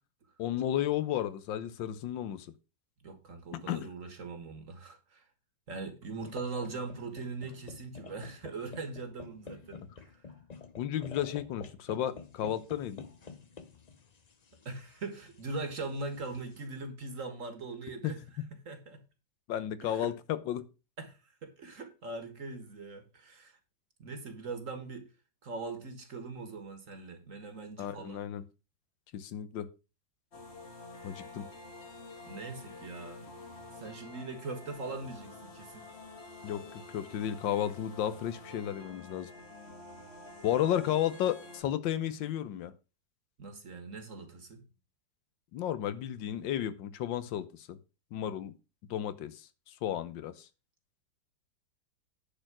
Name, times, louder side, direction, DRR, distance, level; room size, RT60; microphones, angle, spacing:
voice 1, 0.4-2.5 3.5-3.9 10.8-13.0 18.0-18.1 19.5-20.7 27.8-28.4 29.1-29.7 31.0-31.5 36.4-36.6 36.9-39.3 40.4-42.7 45.5-47.8 48.1-48.5 48.9-50.5, left 11 dB, 80° left, 1.6 m, -33 dB
voice 2, 3.0-5.2 5.7-10.3 14.6-18.2 18.5-19.0 19.8-20.1 21.0-23.6 24.0-25.1 25.4-28.2 31.0-31.1 32.3-33.3 33.7-35.8 43.4-44.6, right 3 dB, 45° right, 1.8 m, -41 dB
sound 1, 6.2-16.6, left 5 dB, 65° left, 0.4 m, -50 dB
sound 2, 30.3-41.6, left 2 dB, 35° left, 1.9 m, -49 dB
10.0 x 4.5 x 6.0 m
omnidirectional pair, 2.0 m